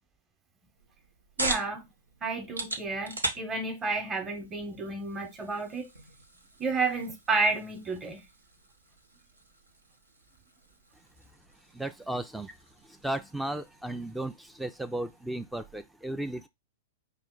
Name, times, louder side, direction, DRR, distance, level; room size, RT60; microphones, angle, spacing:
sound 1, 0.7-15.9, right 2 dB, 90° right, 0.9 m, -41 dB
voice 1, 1.4-1.9 2.2-5.9 6.6-8.2, right 3 dB, 20° right, 0.9 m, -31 dB
voice 2, 11.7-12.5 12.8-16.5, right 1 dB, 5° right, 0.3 m, -35 dB
5.3 x 2.1 x 3.7 m
figure-of-eight pair, 105°, 0 cm